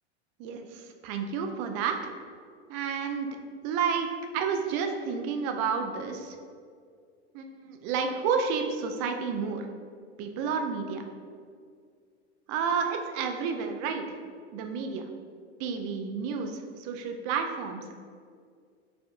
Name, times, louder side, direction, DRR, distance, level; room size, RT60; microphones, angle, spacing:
voice 1, 0.4-2.1 2.7-3.3 3.6-6.4 7.3-9.7 10.2-11.0 12.5-14.0 14.5-15.1 15.6-17.9, right 6 dB, 45° right, 5 dB, 0.5 m, -30 dB
4.9 x 3.6 x 2.4 m, 2.1 s
hypercardioid pair, 110°, 34 cm